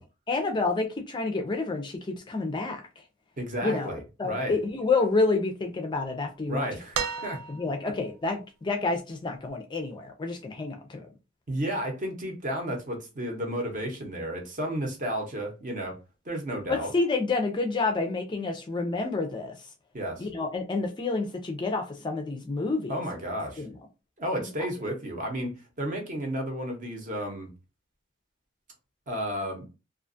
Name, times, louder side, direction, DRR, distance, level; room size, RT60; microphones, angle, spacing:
voice 1, 0.3-2.8 3.6-6.7 7.5-11.1 16.7-19.6 20.2-22.9 23.6-23.8 24.4-24.5, left 3 dB, 25° left, 0.3 m, -29 dB
voice 2, 3.4-4.6 6.5-7.4 7.8-7.9 11.5-16.0 16.3-16.9 19.9-20.3 22.9-23.6 24.2-27.5 29.1-29.6, equal, 40° right, 0.7 m, -32 dB
sound 1, 6.9-8.0 9.5-9.6, right 6 dB, 85° right, 0.4 m, -33 dB
2.4 x 2.2 x 2.5 m
head